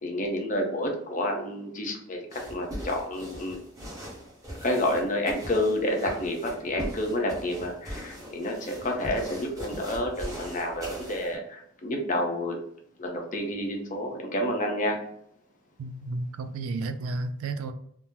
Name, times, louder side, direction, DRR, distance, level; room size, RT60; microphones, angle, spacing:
voice 1, 0.0-3.6 4.6-12.6 13.0-15.0, left 1 dB, 40° left, 2 dB, 0.6 m, -29 dB
sound 1, 2.3-11.4, equal, 15° right, 0.9 m, -40 dB
voice 2, 15.8-17.7, right 3 dB, 75° right, 9 dB, 0.3 m, -32 dB
3.5 x 2.0 x 2.7 m, 0.70 s
head